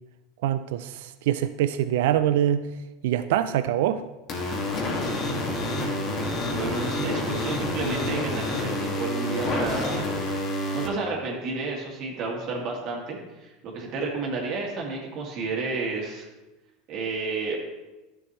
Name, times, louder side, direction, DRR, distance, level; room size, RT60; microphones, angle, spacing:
voice 1, 0.4-2.7 3.0-4.0, right 11 dB, 75° right, 12 dB, 0.4 m, -24 dB
sound 1, 4.3-10.9, left 1 dB, 45° left, 2.1 m, -28 dB
voice 2, 6.4-10.2 10.7-16.3 16.9-17.6, right 3 dB, 55° right, -1 dB, 2.3 m, -31 dB
11.0 x 7.0 x 3.1 m, 1.1 s
hypercardioid pair, 95°, 0 cm